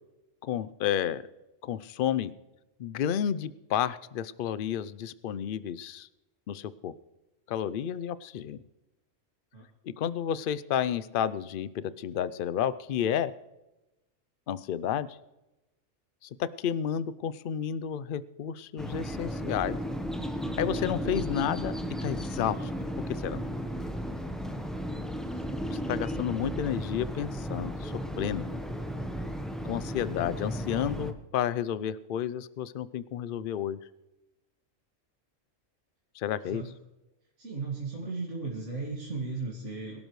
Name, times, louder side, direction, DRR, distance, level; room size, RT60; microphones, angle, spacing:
voice 1, 0.4-1.2 1.6-2.3 2.8-6.1 6.5-6.9 7.5-8.6 10.0-13.3 14.5-15.1 16.2-19.8 20.6-21.7 22.0-22.7 23.2-23.4 25.7-28.5 29.6-33.8 36.2-36.6, left 9 dB, 55° left, 16 dB, 0.6 m, -31 dB
sound 1, 18.8-31.1, equal, ahead, 0.8 m, -34 dB
voice 2, 25.2-25.7 26.1-26.3 36.4-36.7 37.4-40.0, right 4 dB, 65° right, -4 dB, 2.4 m, -36 dB
23.0 x 12.0 x 3.1 m, 0.99 s
omnidirectional pair, 1.3 m